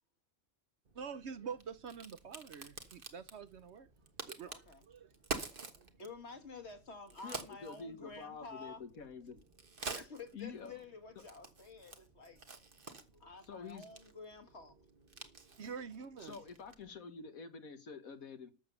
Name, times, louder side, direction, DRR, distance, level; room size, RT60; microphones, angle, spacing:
Crack, 0.9-16.9, right 4 dB, 40° right, 1.5 m, -49 dB
voice 1, 0.9-3.9 4.3-5.1 5.8-5.9 15.6-16.4, right 6 dB, 60° right, 1.0 m, -46 dB
voice 2, 4.4-4.8 6.0-8.8 9.9-12.4 13.1-14.8, left 4 dB, 50° left, 2.0 m, -50 dB
voice 3, 7.2-9.4 10.3-10.8 13.5-13.9 16.2-18.5, left 5 dB, 90° left, 1.9 m, -48 dB
12.5 x 7.0 x 6.8 m
omnidirectional pair, 1.4 m